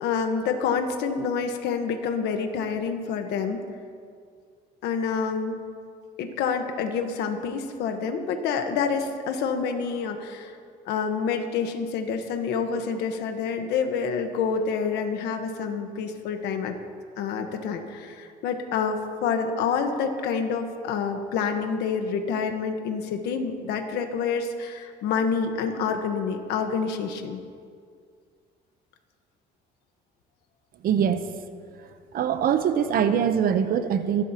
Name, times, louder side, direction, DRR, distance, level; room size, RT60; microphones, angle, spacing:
voice 1, 0.0-3.6 4.8-5.6 6.2-10.5 10.9-16.8 17.2-27.4, left 5 dB, 80° left, 5 dB, 1.3 m, -27 dB
voice 2, 30.8-31.3 32.1-34.2, right 8 dB, 60° right, 9 dB, 0.9 m, -23 dB
27.0 x 12.0 x 3.0 m, 2.2 s
cardioid pair, 110°, 17 cm